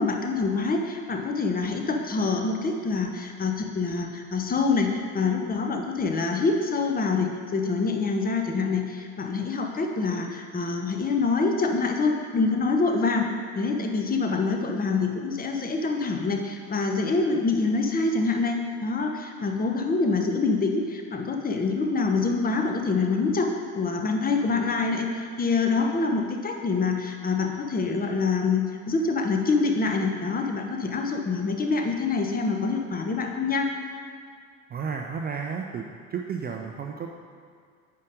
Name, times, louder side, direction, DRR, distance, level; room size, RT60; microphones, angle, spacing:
voice 1, 0.0-13.3 13.5-33.7, left 4 dB, 20° left, 3 dB, 0.9 m, -26 dB
voice 2, 34.7-35.8 36.1-37.1, right 6 dB, 25° right, 2 dB, 0.4 m, -32 dB
9.4 x 3.8 x 5.1 m, 2.2 s
figure-of-eight pair, 55°, 43 cm